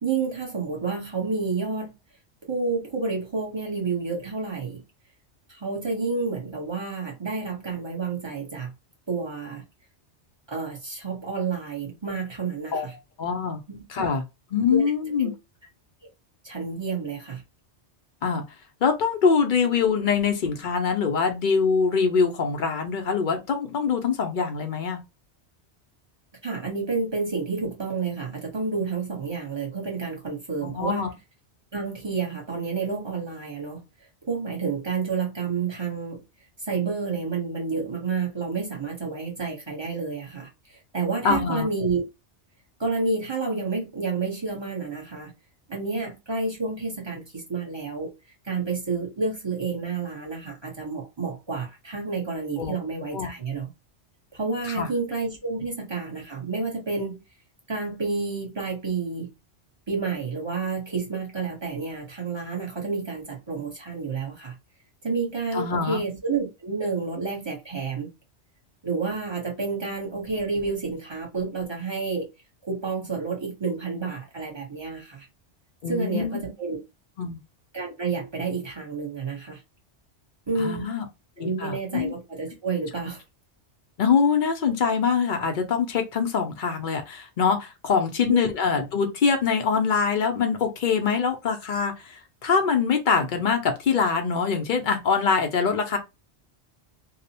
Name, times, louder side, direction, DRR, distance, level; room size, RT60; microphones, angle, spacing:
voice 1, 0.0-1.9 2.5-4.8 5.5-8.7 9.1-9.6 10.5-12.9 13.7-13.8 14.7-14.8 15.2-15.3 16.4-17.4 26.4-31.1 31.7-33.8 34.3-36.2 36.7-42.0 42.8-45.3 45.7-48.1 48.4-53.7 54.3-57.2 57.7-59.3 59.9-64.5 65.0-68.1 68.8-72.3 72.7-75.3 75.9-76.8 77.7-79.6 80.5-81.0 81.4-83.2 88.2-88.4, right 4 dB, 25° right, 0.9 m, -30 dB
voice 2, 13.2-13.6 13.9-14.2 14.5-15.3 18.2-18.4 18.8-25.0 30.6-31.1 41.2-41.7 52.6-52.7 53.1-53.3 54.7-54.9 65.5-66.0 75.8-76.4 77.2-77.4 80.6-81.0 81.4-82.1 84.0-96.0, left 5 dB, 55° left, 0.6 m, -24 dB
2.8 x 2.0 x 2.7 m
omnidirectional pair, 1.2 m